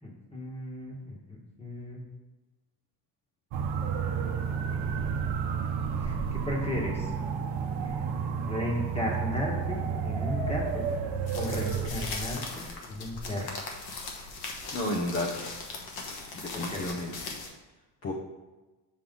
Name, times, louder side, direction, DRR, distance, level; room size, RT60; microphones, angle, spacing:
voice 1, 0.0-2.1 4.2-4.3 4.7-5.2 6.0-7.1 7.8-8.1 8.4-10.9 11.3-13.6 16.5-16.8, left 1 dB, 15° left, -1 dB, 1.4 m, -35 dB
sound 1, 3.5-11.9, right 6 dB, 75° right, 0.8 m, -31 dB
sound 2, 11.3-17.5, left 3 dB, 55° left, 1.3 m, -39 dB
voice 2, 14.7-15.5 16.3-17.1 18.0-18.1, left 1 dB, 30° left, -1 dB, 0.8 m, -32 dB
6.5 x 5.4 x 3.8 m, 1.2 s
cardioid pair, 140°, 44 cm